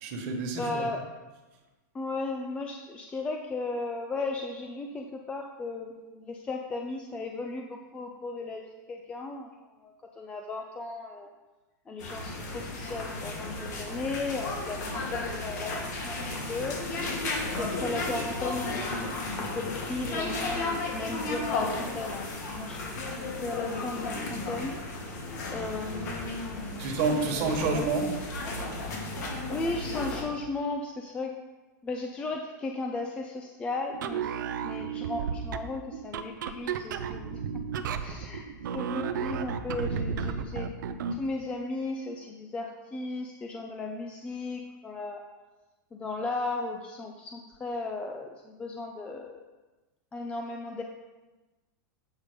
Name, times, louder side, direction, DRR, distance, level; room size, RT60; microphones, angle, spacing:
voice 1, 0.0-0.8 26.8-28.1, right 4 dB, 45° right, 2 dB, 1.5 m, -28 dB
voice 2, 0.6-1.1 1.9-9.5 9.8-11.3 11.9-16.2 16.5-16.9 17.4-18.9 19.6-23.0 23.3-24.8 25.5-26.4 27.3-27.9 29.5-31.4 31.8-34.3 34.6-37.6 38.0-38.5 38.7-40.8 41.1-45.2 45.9-49.4 50.1-50.8, left 3 dB, 10° left, 2 dB, 0.4 m, -36 dB
sound 1, 12.0-30.2, left 2 dB, 65° left, 2.1 m, -34 dB
sound 2, 33.9-41.3, right 6 dB, 90° right, 0.5 m, -33 dB
8.1 x 5.2 x 5.1 m, 1.2 s
supercardioid pair, 165°, 10 cm